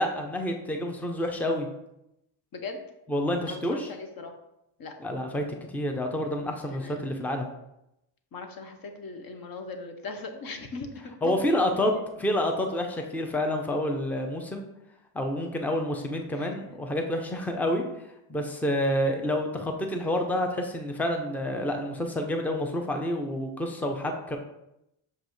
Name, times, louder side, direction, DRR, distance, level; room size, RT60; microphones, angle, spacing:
voice 1, 0.0-1.7 3.1-3.9 5.0-5.4 5.7-7.5 11.2-11.9 12.2-14.6 15.1-17.8 18.3-24.4, left 1 dB, 5° left, 3 dB, 0.5 m, -28 dB
voice 2, 3.4-4.3 4.8-4.9 6.7-7.2 8.3-12.0 16.3-16.5, left 3 dB, 45° left, 6 dB, 0.9 m, -39 dB
6.4 x 5.1 x 3.1 m, 0.84 s
cardioid pair, 140°, 50 cm